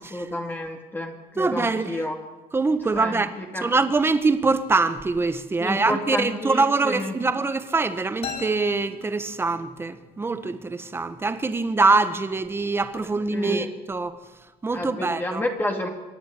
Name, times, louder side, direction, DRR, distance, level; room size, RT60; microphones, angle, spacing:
voice 1, 0.0-2.2 2.9-3.7 5.6-7.1 13.3-13.7 14.7-15.9, left 1 dB, 15° left, 2.5 m, -30 dB
voice 2, 1.4-2.0 2.5-3.3 3.6-14.1 14.6-15.4, right 3 dB, 15° right, 1.4 m, -24 dB
sound 1, 8.2-9.9, left 6 dB, 50° left, 7.0 m, -38 dB
26.5 x 10.0 x 9.8 m
cardioid pair, 130°, 14 cm